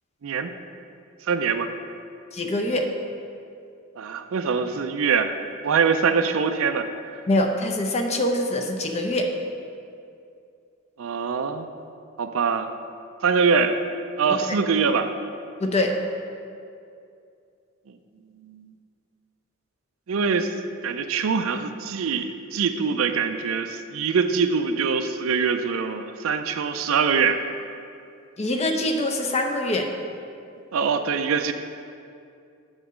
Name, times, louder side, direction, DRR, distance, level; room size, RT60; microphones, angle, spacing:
voice 1, 1.3-1.7 4.0-5.4 5.6-6.9 11.0-11.7 12.2-12.7 13.2-13.8 14.2-15.1 18.4-18.7 20.1-20.5 20.8-27.4 30.7-31.5, right 5 dB, 75° right, 9 dB, 0.4 m, -23 dB
voice 2, 2.3-2.9 7.3-9.3 14.4-14.6 15.6-16.0 28.4-29.9, left 1 dB, 30° left, 3 dB, 0.6 m, -24 dB
8.0 x 4.0 x 6.2 m, 2.5 s
head